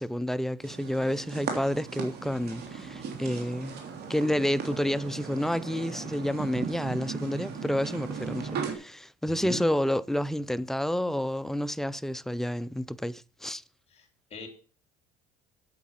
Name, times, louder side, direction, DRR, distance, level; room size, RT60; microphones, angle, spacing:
voice 1, 0.0-3.8 4.1-13.6, equal, ahead, 0.4 m, -29 dB
sound 1, 0.6-8.7, right 6 dB, 60° right, 3.1 m, -37 dB
voice 2, 9.2-9.7 13.9-14.5, left 1 dB, 35° left, 3.6 m, -40 dB
8.5 x 8.2 x 5.7 m
cardioid pair, 115°, 19 cm